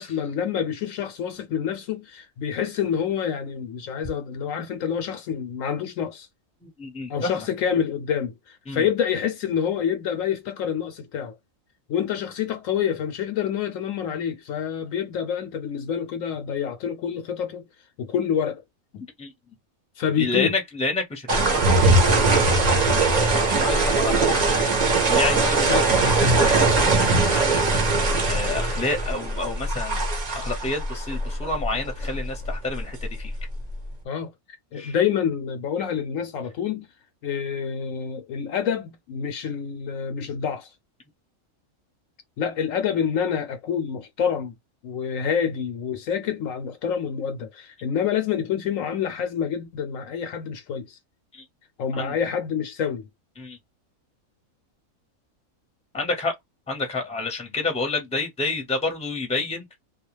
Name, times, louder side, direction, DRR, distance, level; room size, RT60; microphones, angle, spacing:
voice 1, 0.0-6.3 7.1-11.4 11.9-17.7 18.0-18.6 18.9-19.0 20.0-20.5 25.7-25.9 34.0-34.3 34.7-36.9 37.2-40.7 42.4-44.5 44.8-51.0 51.8-53.0, left 8 dB, 70° left, 0.9 m, -27 dB
voice 2, 6.6-7.5 8.7-8.9 19.2-19.3 20.2-24.7 25.1-33.4 34.8-34.9 51.3-51.4 51.9-52.1 53.4-53.6 55.9-56.3 56.7-59.8, left 3 dB, 5° left, 0.7 m, -30 dB
sound 1, 21.3-33.9, right 3 dB, 45° right, 0.5 m, -21 dB
2.4 x 2.3 x 3.0 m
omnidirectional pair, 1.5 m